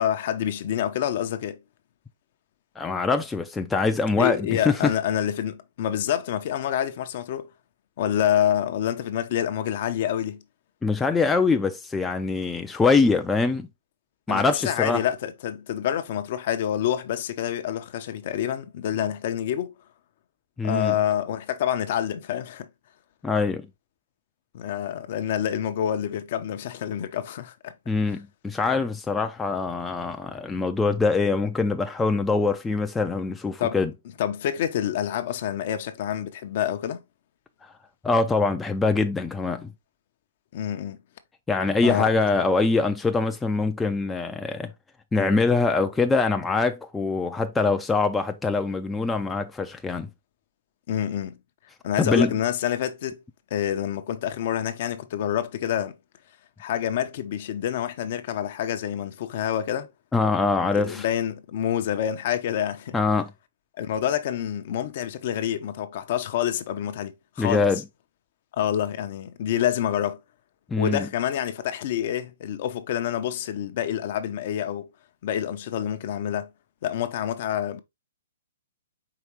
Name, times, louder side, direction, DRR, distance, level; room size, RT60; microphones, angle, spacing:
voice 1, 0.0-1.6 4.2-7.5 8.0-10.4 14.3-19.7 20.6-22.7 24.5-27.7 33.6-33.8 34.2-37.0 40.5-41.0 41.8-42.1 44.5-44.6 50.9-51.4 51.8-53.2 53.5-56.0 56.6-59.9 60.7-63.0 63.8-67.7 68.5-70.2 70.7-74.9 75.2-76.5 76.8-77.8, left 10 dB, 50° left, 0.6 m, -27 dB
voice 2, 2.8-4.9 10.8-13.7 14.3-15.0 20.6-21.0 23.2-23.7 27.9-33.9 37.6-37.7 38.0-39.7 41.5-44.7 45.1-50.1 52.0-52.3 60.1-61.0 62.9-63.3 67.4-67.8 70.7-71.1, left 4 dB, 10° left, 0.4 m, -23 dB
4.8 x 3.2 x 2.9 m
hypercardioid pair, 135°, 0 cm